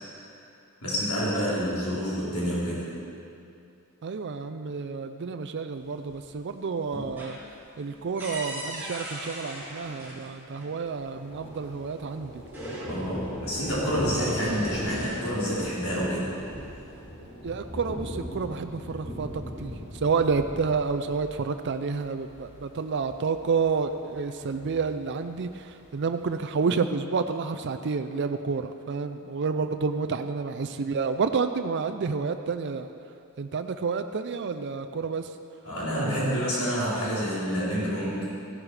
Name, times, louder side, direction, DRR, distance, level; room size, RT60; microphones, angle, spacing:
voice 1, 0.8-2.9 12.9-16.3 35.6-38.3, equal, 80° left, -8 dB, 3.9 m, -28 dB
voice 2, 4.0-12.4 17.4-32.9 33.4-35.4, right 5 dB, 55° right, 8 dB, 0.5 m, -29 dB
sound 1, 5.8-6.4 6.7-10.7 11.8-11.9 12.3-13.3 13.6-15.3 16.2-17.0, right 1 dB, 10° right, 4.0 m, -41 dB
Thunder, 10.9-26.4, equal, 30° left, 2.9 m, -39 dB
15.5 x 11.0 x 4.9 m, 2.6 s
head